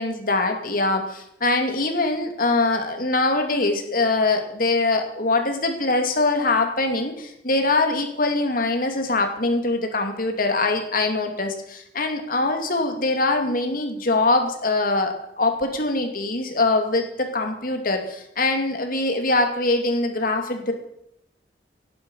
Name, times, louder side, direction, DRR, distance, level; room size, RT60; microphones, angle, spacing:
voice 1, 0.0-20.7, left 2 dB, 50° left, 5 dB, 2.6 m, -23 dB
17.0 x 11.5 x 5.6 m, 0.76 s
head